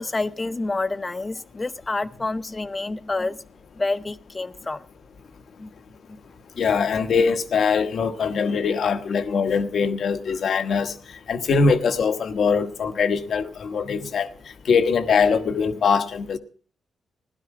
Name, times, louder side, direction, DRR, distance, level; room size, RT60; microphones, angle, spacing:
voice 1, 0.0-3.4 3.8-4.9 5.6-5.7 6.1-6.2 13.8-14.1, left 3 dB, 25° left, 0.8 m, -28 dB
voice 2, 6.6-10.9 11.3-14.3 14.6-16.4, left 5 dB, 70° left, 1.2 m, -22 dB
16.5 x 12.0 x 4.9 m
cardioid pair, 100°, 0 cm